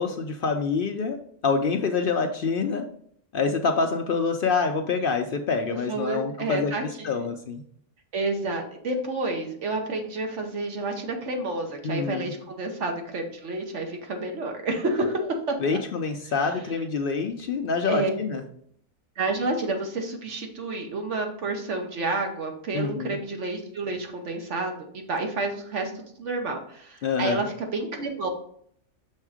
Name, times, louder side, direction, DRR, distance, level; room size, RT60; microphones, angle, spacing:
voice 1, 0.0-2.9 3.3-6.7 7.0-7.6 11.8-12.3 15.6-18.4 22.7-23.2 27.0-27.4, left 5 dB, 60° left, 5 dB, 0.6 m, -26 dB
voice 2, 5.7-7.2 8.1-15.8 16.3-16.7 17.9-18.4 19.2-25.9 26.2-28.3, right 2 dB, 65° right, 3 dB, 1.2 m, -30 dB
6.4 x 3.6 x 4.9 m, 0.65 s
omnidirectional pair, 1.4 m